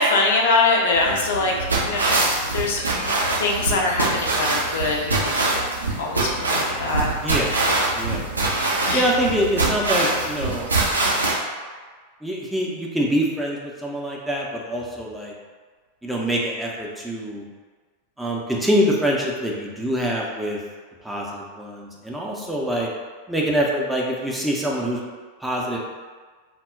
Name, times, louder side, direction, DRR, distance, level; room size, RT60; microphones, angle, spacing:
voice 1, 0.0-2.2 2.5-5.7 6.0-7.1 8.9-9.1, left 3 dB, 60° left, -1 dB, 0.4 m, -23 dB
walking in beach sand, 0.9-11.3, right 2 dB, 80° right, 0.5 m, -24 dB
voice 2, 7.2-7.5 7.9-8.2 8.9-10.7 12.2-15.3 16.0-17.5 18.2-20.6 21.0-22.9 23.3-25.0 25.4-25.8, equal, 5° right, -3 dB, 0.5 m, -25 dB
2.1 x 2.0 x 3.5 m, 1.5 s
figure-of-eight pair, 90°, 0 cm